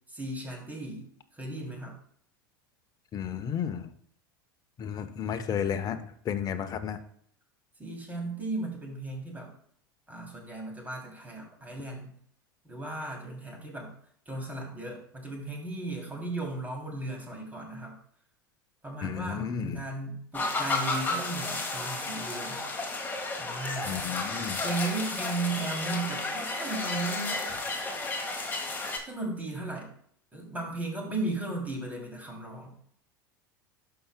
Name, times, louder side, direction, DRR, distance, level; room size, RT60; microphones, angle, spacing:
voice 1, 0.1-1.1 1.3-1.9 7.8-9.5 10.1-12.1 12.6-13.9 14.3-17.9 18.8-22.6 23.4-24.1 24.6-27.4 29.0-29.9 30.3-32.7, right 2 dB, 15° right, -1 dB, 2.9 m, -36 dB
voice 2, 3.1-3.9 4.8-7.0 19.0-19.8 23.8-24.6, left 8 dB, 35° left, 9 dB, 0.8 m, -33 dB
sound 1, 20.3-29.0, left 3 dB, 15° left, 1.6 m, -32 dB
12.0 x 5.7 x 2.2 m, 0.62 s
hypercardioid pair, 90°, 11 cm